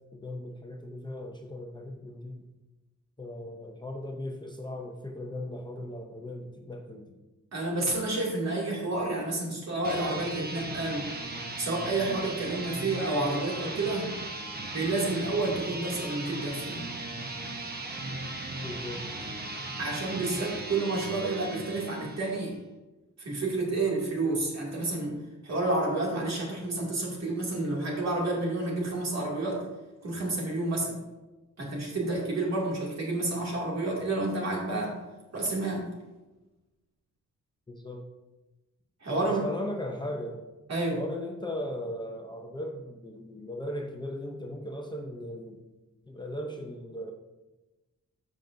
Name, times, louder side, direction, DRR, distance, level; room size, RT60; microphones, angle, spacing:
voice 1, 0.1-2.4 3.2-7.2 18.6-19.0 37.7-38.1 39.2-40.4 40.9-45.6 46.1-47.1, left 1 dB, 15° left, 2 dB, 0.6 m, -37 dB
voice 2, 7.5-11.1 11.6-14.1 14.7-16.8 19.8-22.5 23.2-25.2 25.4-29.7 30.0-31.0 31.6-35.0 35.3-35.8 39.0-39.4 40.7-41.0, right 2 dB, 55° right, -3 dB, 2.5 m, -30 dB
sound 1, 9.7-22.5, right 2 dB, 30° right, 1.1 m, -37 dB
13.5 x 5.2 x 2.7 m, 1.1 s
wide cardioid pair, 150°, 31 cm